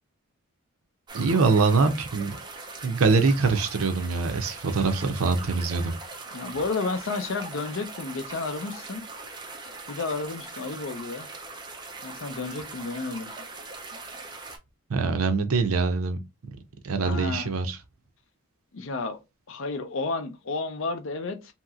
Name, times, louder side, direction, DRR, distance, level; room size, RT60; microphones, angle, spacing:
sound 1, 1.1-14.6, right 3 dB, 20° right, 0.4 m, -41 dB
voice 1, 1.1-2.4 2.8-5.9 14.9-16.2 16.8-17.8, right 4 dB, 90° right, 0.5 m, -23 dB
voice 2, 6.3-9.0 9.9-11.3 12.0-13.3 17.0-17.5 18.7-19.2 19.5-21.5, left 3 dB, 65° left, 0.5 m, -31 dB
2.9 x 2.8 x 2.3 m
head